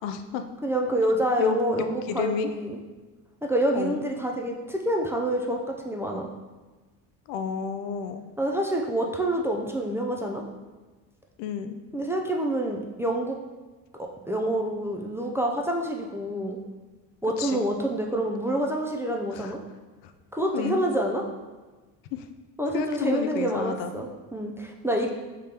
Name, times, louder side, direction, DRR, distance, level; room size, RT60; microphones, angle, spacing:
voice 1, 0.0-0.5 1.4-1.6 2.1-2.5 3.7-4.0 7.3-8.3 11.4-11.8 17.4-17.6 19.3-19.5 20.0-20.1 20.5-20.8 22.1-22.3 22.7-23.9, left 8 dB, 85° left, 8 dB, 0.6 m, -31 dB
voice 2, 0.6-2.8 3.4-6.3 8.4-10.4 11.9-13.4 14.0-16.6 17.2-19.6 20.3-21.2 22.6-25.1, right 1 dB, 5° right, 0 dB, 0.4 m, -27 dB
4.9 x 3.7 x 2.9 m, 1.3 s
supercardioid pair, 95°, 42 cm